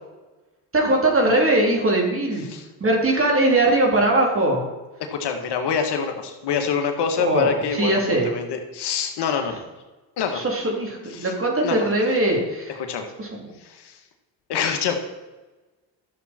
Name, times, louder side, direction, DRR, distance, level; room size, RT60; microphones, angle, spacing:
voice 1, 0.7-2.4 2.8-4.6 7.2-8.3 10.3-12.7 13.2-13.4, right 1 dB, 30° right, 0 dB, 3.3 m, -20 dB
voice 2, 5.1-8.0 8.3-9.6 10.2-10.4 11.1-11.3 11.6-11.9 12.9-13.1 13.6-13.9 14.5-15.0, left 6 dB, 60° left, 5 dB, 1.7 m, -25 dB
12.5 x 7.3 x 4.4 m, 1.2 s
supercardioid pair, 75°, 46 cm